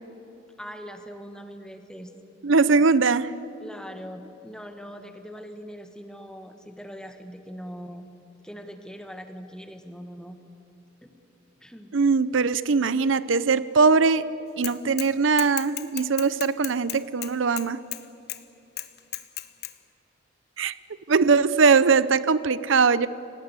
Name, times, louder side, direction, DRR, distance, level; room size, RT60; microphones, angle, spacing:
voice 1, 0.6-2.1 3.6-8.0 8.4-10.4 11.0-11.1 11.6-11.9, equal, 5° left, 7 dB, 1.6 m, -41 dB
voice 2, 2.4-3.3 11.9-14.2 14.6-17.8 20.6-20.7 21.1-23.1, right 4 dB, 80° right, 16 dB, 0.6 m, -21 dB
Bicycle / Mechanisms, 14.6-15.1 15.4-18.0 18.3-18.4 18.8-19.7, left 15 dB, 55° left, 1.1 m, -34 dB
28.5 x 18.5 x 8.2 m, 2.9 s
head